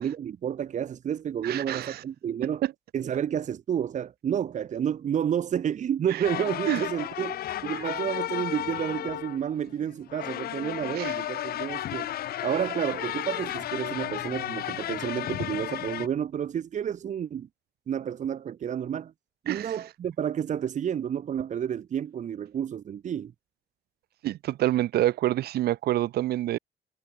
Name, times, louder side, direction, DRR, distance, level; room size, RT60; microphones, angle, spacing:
voice 1, 0.0-2.6 2.9-7.4 7.6-12.1 12.4-17.5 17.9-19.1 19.4-23.3, right 9 dB, 45° right, 1.6 m, -30 dB
voice 2, 1.4-2.0 2.4-2.7 6.1-6.2 6.7-6.8 10.9-11.1 19.5-19.8 24.2-26.6, right 14 dB, 70° right, 2.1 m, -27 dB
sound 1, 6.2-16.1, left 12 dB, 65° left, 2.6 m, -33 dB
cardioid pair, 110°, 17 cm